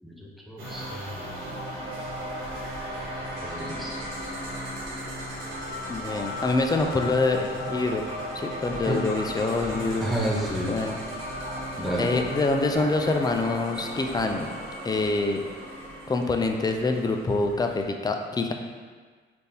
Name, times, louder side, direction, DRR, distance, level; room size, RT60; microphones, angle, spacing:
voice 1, 0.0-1.2 3.4-3.9 8.9-9.0 10.0-10.7 11.8-12.1, right 1 dB, ahead, -4 dB, 0.8 m, -30 dB
sound 1, 0.6-17.8, equal, 80° right, 1.3 m, -35 dB
voice 2, 5.9-8.0 8.3-10.1 10.6-11.0 12.0-14.5 14.8-15.4 16.1-18.5, left 3 dB, 20° left, 4 dB, 0.4 m, -26 dB
4.2 x 2.6 x 3.4 m, 1.5 s
cardioid pair, 90°, 20 cm